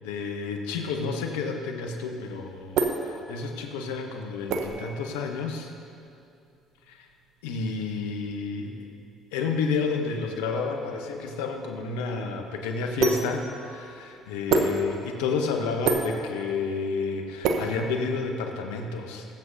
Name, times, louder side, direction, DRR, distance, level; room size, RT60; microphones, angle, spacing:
voice 1, 0.0-5.7 6.9-7.0 7.4-8.7 9.3-19.3, left 4 dB, 80° left, 4 dB, 1.0 m, -30 dB
sound 1, 2.1-18.5, right 4 dB, 65° right, 0.8 m, -32 dB
20.0 x 7.8 x 2.7 m, 2.6 s
hypercardioid pair, 55°, 0 cm